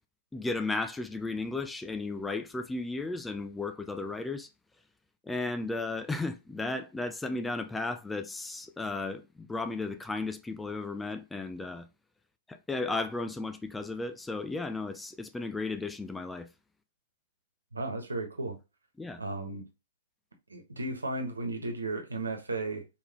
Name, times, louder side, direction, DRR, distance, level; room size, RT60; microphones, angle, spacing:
voice 1, 0.3-4.5 5.3-11.9 12.5-16.5 19.0-19.2, left 3 dB, 10° left, 0.5 m, -34 dB
voice 2, 17.7-18.6 19.2-19.6 20.5-22.9, right 2 dB, 85° right, 1.3 m, -34 dB
4.3 x 3.9 x 3.0 m
figure-of-eight pair, 110°, 0 cm